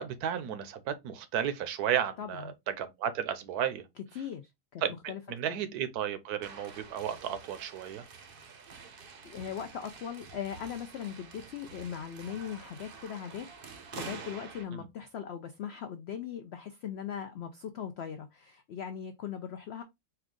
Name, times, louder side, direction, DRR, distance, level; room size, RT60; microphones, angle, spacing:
voice 1, 0.0-3.8 4.8-4.9 5.3-8.0 14.7-14.9, right 9 dB, 75° right, 1.2 m, -33 dB
voice 2, 2.2-2.5 4.1-4.8 5.1-5.2 5.5-5.6 9.2-19.8, left 8 dB, 75° left, 0.6 m, -39 dB
sound 1, 6.4-14.6, right 5 dB, 50° right, 0.7 m, -48 dB
4.4 x 2.4 x 3.7 m
omnidirectional pair, 1.7 m